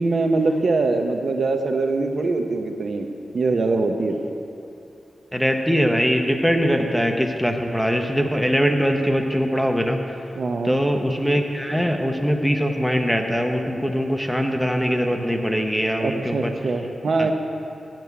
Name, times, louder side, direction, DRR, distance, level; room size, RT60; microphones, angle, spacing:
voice 1, 0.0-3.1 3.3-4.2 10.4-10.8 16.0-17.3, right 3 dB, 60° right, 5 dB, 0.7 m, -23 dB
voice 2, 5.3-10.2 10.6-16.5 17.2-17.3, equal, ahead, 3 dB, 0.7 m, -22 dB
8.9 x 6.1 x 8.1 m, 2.7 s
wide cardioid pair, 100°, 0 cm